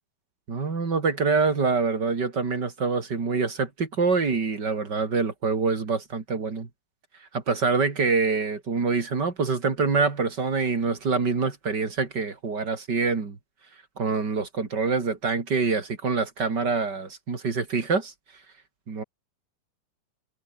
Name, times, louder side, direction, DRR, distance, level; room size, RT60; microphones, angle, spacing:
voice 1, 0.5-6.7 7.3-13.4 14.0-18.1 18.9-19.0, right 4 dB, 30° right, 3.0 m, -25 dB
omnidirectional pair, 4.5 m